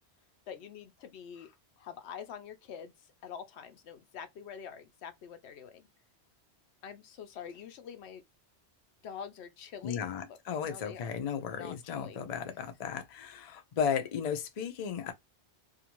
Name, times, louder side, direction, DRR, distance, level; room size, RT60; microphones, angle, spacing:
voice 1, 0.5-2.9 3.2-5.9 6.8-8.2 9.0-10.1 10.5-11.2 11.5-12.2, left 7 dB, 80° left, 0.9 m, -46 dB
voice 2, 9.8-15.1, left 7 dB, 45° left, 0.5 m, -35 dB
2.5 x 2.4 x 2.9 m
omnidirectional pair, 1.1 m